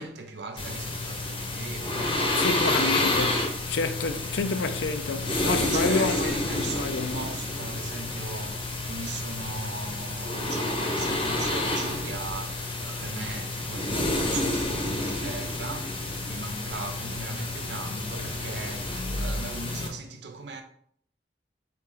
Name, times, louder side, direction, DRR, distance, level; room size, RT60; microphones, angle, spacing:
voice 1, 0.0-2.5 4.5-4.7 5.3-20.6, right 3 dB, 70° right, 0.7 m, -39 dB
sound 1, 0.6-19.9, left 2 dB, 30° left, 0.8 m, -29 dB
voice 2, 2.4-7.3, left 4 dB, 90° left, 0.4 m, -29 dB
4.2 x 3.0 x 3.9 m
head